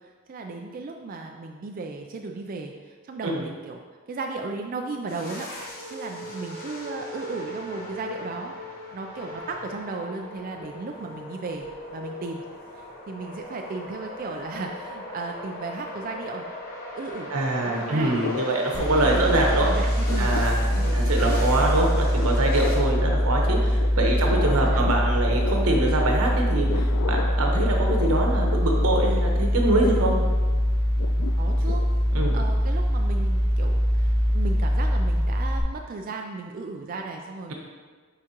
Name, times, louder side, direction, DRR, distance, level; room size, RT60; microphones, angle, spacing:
voice 1, 0.0-3.8 4.1-12.4 12.7-16.4 16.9-18.2 18.7-20.3 20.6-21.4 24.0-24.8 31.4-31.9 32.3-37.5, right 3 dB, 40° right, 2 dB, 0.3 m, -35 dB
sound 1, 5.1-22.8, left 1 dB, 45° left, 1.1 m, -39 dB
voice 2, 17.3-19.7 20.2-20.6 20.9-30.1 32.1-32.4, right 2 dB, 90° right, 0 dB, 1.1 m, -24 dB
sound 2, 18.2-19.5 19.7-32.9, left 7 dB, 75° left, 0.3 m, -36 dB
sound 3, 18.7-35.6, equal, 15° left, 0.5 m, -23 dB
9.7 x 3.6 x 2.9 m, 1.5 s
head